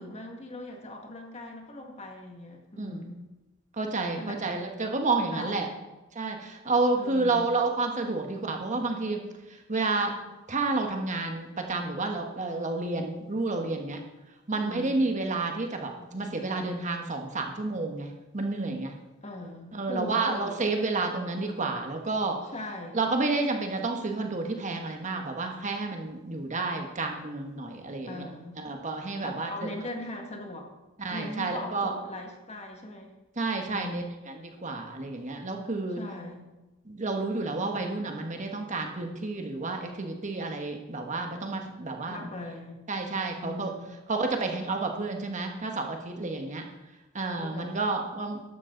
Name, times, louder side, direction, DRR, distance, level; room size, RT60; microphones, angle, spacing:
voice 1, 0.0-3.2 4.2-4.4 5.3-5.8 7.0-7.5 14.5-15.0 19.2-20.6 22.5-23.1 28.0-28.6 29.2-30.7 31.1-33.1 33.6-34.1 36.0-36.5 42.1-42.8 43.4-44.0 47.4-47.8, left 1 dB, 35° left, 2 dB, 1.9 m, -40 dB
voice 2, 3.8-5.7 6.1-9.2 9.7-10.1 10.5-14.0 14.5-18.1 18.3-18.9 19.7-22.4 22.9-28.2 28.6-29.7 31.0-31.9 33.4-36.0 36.9-42.3 42.9-43.7 44.1-46.6 47.1-48.4, right 3 dB, 35° right, 3 dB, 1.4 m, -30 dB
13.0 x 11.5 x 3.9 m, 1.1 s
head